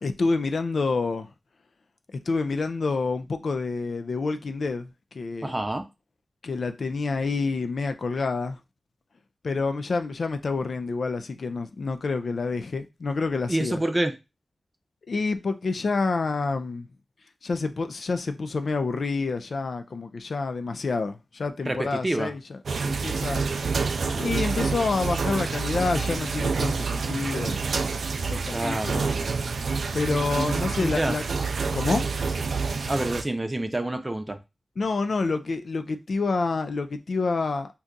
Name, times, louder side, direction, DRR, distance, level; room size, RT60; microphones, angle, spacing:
voice 1, 0.0-1.3 2.3-4.9 5.1-5.5 6.4-8.6 9.4-13.8 15.1-16.9 17.4-22.6 22.8-23.4 24.1-27.6 28.2-29.0 29.9-31.2 31.7-32.1 34.8-37.7, left 4 dB, 75° left, 0.3 m, -28 dB
voice 2, 5.4-5.8 13.5-14.1 21.7-22.3 28.5-29.0 30.5-31.2 32.9-34.4, right 1 dB, 25° right, 0.6 m, -27 dB
sound 1, 22.7-33.2, right 4 dB, 85° right, 0.3 m, -28 dB
2.7 x 2.3 x 3.7 m
cardioid pair, 50°, 0 cm